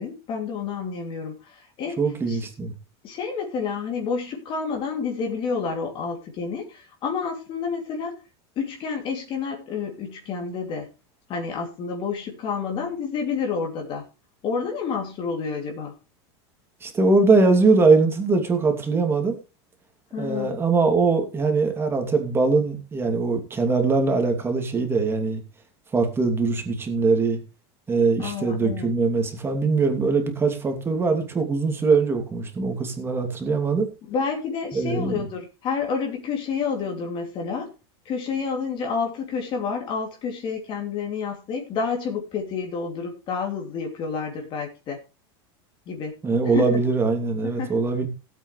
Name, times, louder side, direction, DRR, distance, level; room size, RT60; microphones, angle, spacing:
voice 1, 0.0-2.0 2.3-2.4 3.0-8.2 8.6-10.9 11.3-14.0 14.4-15.9 20.1-20.5 28.2-28.9 34.1-37.7 38.0-45.0 45.9-46.2 46.5-46.8 47.5-47.8, left 5 dB, 35° left, 2.9 m, -29 dB
voice 2, 2.0-2.7 16.8-19.4 20.2-25.4 25.9-27.4 27.9-33.9 34.7-35.3 46.2-48.1, right 4 dB, 15° right, 2.8 m, -22 dB
17.5 x 8.4 x 3.3 m
supercardioid pair, 145°, 14 cm